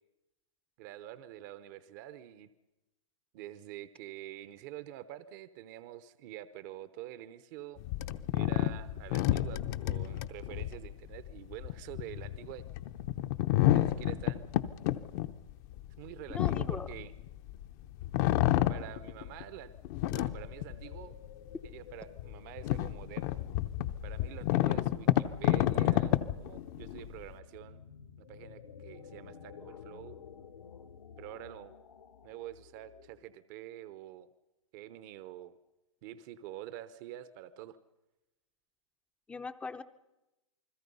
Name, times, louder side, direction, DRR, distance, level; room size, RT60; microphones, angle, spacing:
voice 1, 0.8-2.5 3.3-7.8 8.3-12.6 13.7-14.5 16.0-17.1 18.7-19.7 20.1-21.2 21.6-23.4 24.0-27.8 28.2-30.2 31.2-31.7 32.2-34.3 34.7-35.6 36.0-37.8, right 13 dB, 35° right, 13 dB, 0.9 m, -47 dB
sound 1, 7.8-17.6 18.0-19.4 19.8-21.2 21.7-21.8 22.2-27.3, left 14 dB, 35° left, 0.8 m, -30 dB
voice 2, 16.4-16.9 39.3-39.8, left 4 dB, 5° left, 11 dB, 0.7 m, -40 dB
sound 2, 19.3-33.4, left 7 dB, 85° left, 2.3 m, -53 dB
28.5 x 21.0 x 5.5 m, 1.0 s
hypercardioid pair, 145°, 16 cm